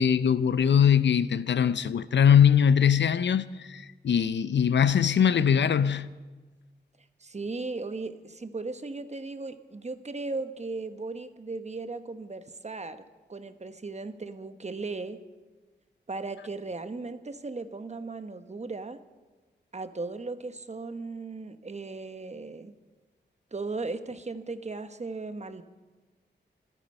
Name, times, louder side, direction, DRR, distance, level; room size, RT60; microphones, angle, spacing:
voice 1, 0.0-6.1, left 8 dB, 80° left, 0.6 m, -22 dB
voice 2, 7.2-13.0 13.3-15.2 16.1-19.0 19.7-22.7 23.5-25.6, right 3 dB, 40° right, 1.1 m, -37 dB
26.0 x 9.1 x 5.4 m
cardioid pair, 60°, 18 cm